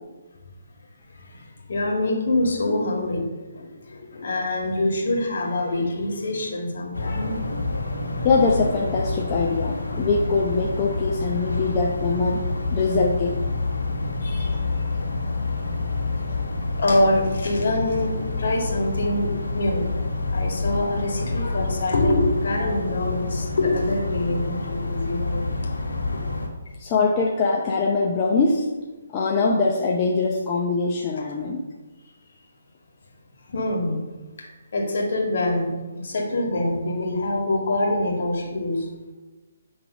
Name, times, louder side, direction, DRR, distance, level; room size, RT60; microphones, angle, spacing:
voice 1, 1.2-3.3 3.5-7.4 14.2-14.6 15.7-15.8 16.1-16.5 16.8-19.9 20.3-25.5 26.1-26.2 33.5-34.0 34.4-38.9, left 1 dB, 60° left, -1 dB, 1.9 m, -25 dB
sound 1, 6.9-26.5, left 3 dB, 80° left, 1.6 m, -28 dB
voice 2, 8.2-12.4 12.7-13.4 26.8-28.7 29.1-31.6, left 4 dB, 30° left, -2 dB, 0.7 m, -22 dB
8.3 x 3.5 x 5.1 m, 1.2 s
figure-of-eight pair, 140°, 0 cm